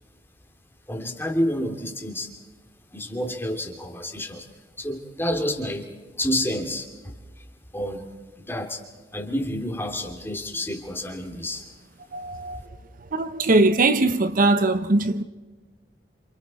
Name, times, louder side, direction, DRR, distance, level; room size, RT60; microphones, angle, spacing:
voice 1, 0.9-2.3 2.9-4.5 4.8-5.9 6.2-7.2 7.7-8.1 8.4-8.8 9.1-11.7, left 1 dB, 15° left, 2.5 m, -29 dB
voice 2, 12.1-12.7 13.0-15.2, right 2 dB, 50° right, 0.8 m, -21 dB
29.0 x 27.0 x 4.2 m
head